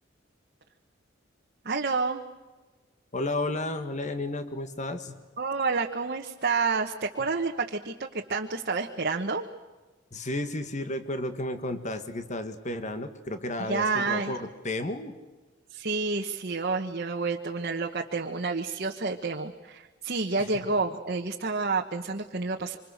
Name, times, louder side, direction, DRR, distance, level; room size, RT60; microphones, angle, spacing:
voice 1, 1.6-2.2 5.4-9.4 13.6-14.4 15.7-22.8, right 4 dB, 50° right, 2 dB, 1.3 m, -29 dB
voice 2, 3.1-5.2 10.1-15.1 20.4-20.6, left 2 dB, 40° left, 9 dB, 1.7 m, -32 dB
26.5 x 26.0 x 6.6 m, 1.2 s
head